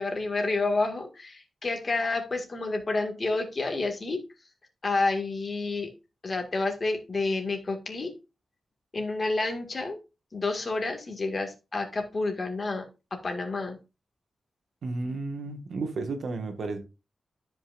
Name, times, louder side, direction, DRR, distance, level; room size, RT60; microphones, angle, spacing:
voice 1, 0.0-4.2 4.8-5.9 6.2-8.1 8.9-10.0 10.3-13.8, left 3 dB, 35° left, 1.9 m, -29 dB
voice 2, 14.8-16.8, right 3 dB, 65° right, 1.5 m, -32 dB
13.0 x 5.3 x 2.5 m
wide cardioid pair, 150°, 0 cm